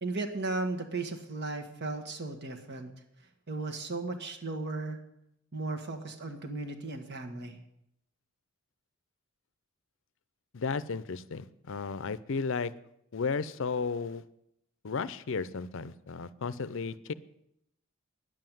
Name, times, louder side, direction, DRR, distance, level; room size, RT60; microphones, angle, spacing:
voice 1, 0.0-2.9 3.5-5.0 5.5-7.6, right 2 dB, 55° right, 5 dB, 1.6 m, -35 dB
voice 2, 10.5-12.7 13.1-14.2 14.8-17.1, left 4 dB, 65° left, 16 dB, 0.6 m, -34 dB
10.5 x 7.7 x 9.1 m, 0.79 s
head